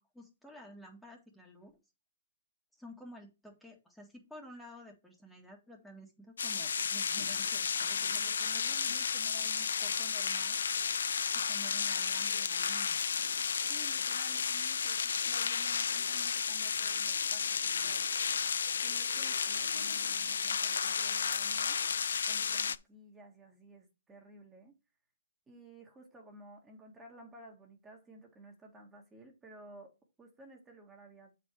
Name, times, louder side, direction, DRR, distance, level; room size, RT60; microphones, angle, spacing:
voice 1, 0.0-1.7 2.8-10.6 11.3-13.0, equal, 5° left, 1.8 m, -52 dB
sound 1, 6.4-22.8, left 6 dB, 75° left, 0.5 m, -32 dB
voice 2, 13.7-18.1 18.8-21.8 22.3-24.7 25.5-31.4, right 2 dB, 15° right, 1.8 m, -55 dB
7.4 x 4.8 x 4.6 m
hypercardioid pair, 135°, 0 cm